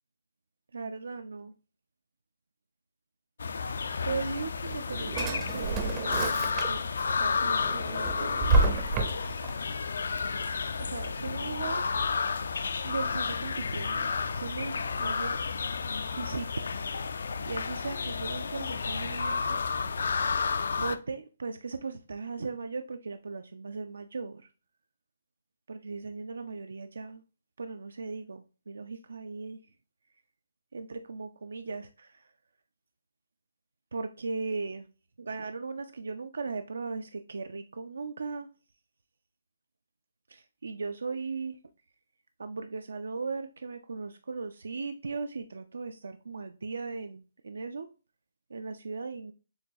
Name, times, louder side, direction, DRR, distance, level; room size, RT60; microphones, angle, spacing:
voice 1, 0.7-1.5 4.0-6.8 7.1-8.6 10.8-11.9 12.8-14.1 14.4-15.4 16.1-16.5 16.9-19.6 20.8-24.5 25.7-27.2 27.6-29.6 30.7-32.3 33.9-34.8 35.2-38.5 40.3-41.6 42.4-47.9 48.5-49.3, right 4 dB, 85° right, 8 dB, 0.4 m, -38 dB
sound 1, 3.4-21.0, left 5 dB, 75° left, 0.3 m, -31 dB
Drawer open or close, 4.5-7.0 7.4-9.5, right 3 dB, 20° right, 0.5 m, -29 dB
6.9 x 2.3 x 2.6 m, 0.34 s
hypercardioid pair, 160°, 0 cm